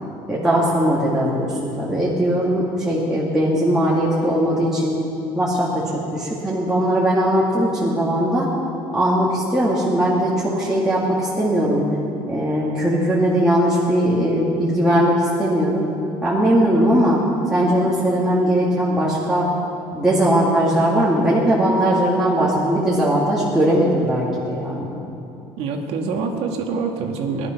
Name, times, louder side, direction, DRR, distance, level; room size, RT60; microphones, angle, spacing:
voice 1, 0.3-5.0 5.4-8.5 8.9-11.8 12.3-15.9 16.2-17.2 17.5-19.5 19.9-24.9, equal, 5° right, -8 dB, 2.2 m, -19 dB
voice 2, 25.6-27.5, right 5 dB, 65° right, 3 dB, 1.8 m, -25 dB
18.0 x 11.5 x 5.9 m, 2.7 s
cardioid pair, 145°, 11 cm